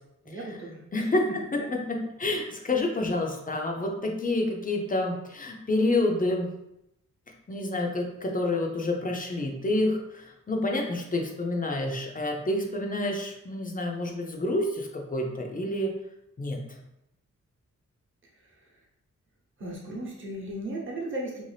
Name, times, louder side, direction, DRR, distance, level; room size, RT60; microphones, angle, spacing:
voice 1, 0.2-1.1 1.5-1.6 18.4-18.7 19.6-21.4, right 1 dB, 40° right, -3 dB, 0.9 m, -36 dB
voice 2, 0.9-1.2 1.5-6.5 7.5-15.9 16.4-16.6, left 2 dB, 25° left, 1 dB, 0.5 m, -28 dB
3.0 x 2.6 x 3.3 m, 0.84 s
wide cardioid pair, 115°, 31 cm